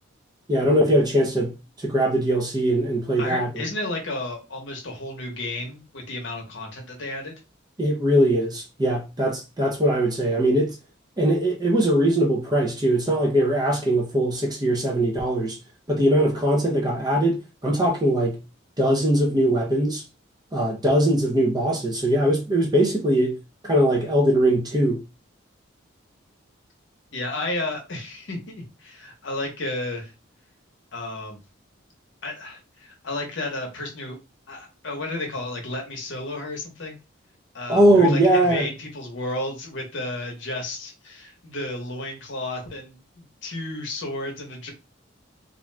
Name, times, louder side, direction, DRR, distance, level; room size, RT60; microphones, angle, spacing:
voice 1, 0.5-1.6 1.8-3.6 7.8-10.7 11.2-15.6 15.9-18.4 18.8-20.0 20.5-23.4 23.6-25.0 37.7-38.7, right 1 dB, 20° right, 0.5 m, -21 dB
voice 2, 3.2-7.3 27.1-30.1 30.9-31.4 32.2-34.2 34.5-37.0 37.5-44.7, left 2 dB, 65° left, 0.8 m, -32 dB
2.5 x 2.2 x 3.1 m
head